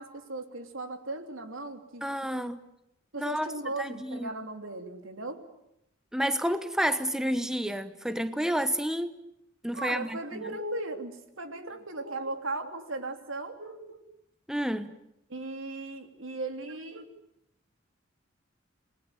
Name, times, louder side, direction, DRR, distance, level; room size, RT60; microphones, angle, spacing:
voice 1, 0.0-2.4 3.1-5.4 9.7-14.0 15.3-17.1, right 2 dB, 90° right, 3.2 m, -37 dB
voice 2, 2.0-2.6 3.2-3.5 3.8-4.3 6.1-9.1 9.6-10.6 14.5-14.9, equal, 5° right, 1.0 m, -30 dB
28.0 x 20.5 x 9.2 m
head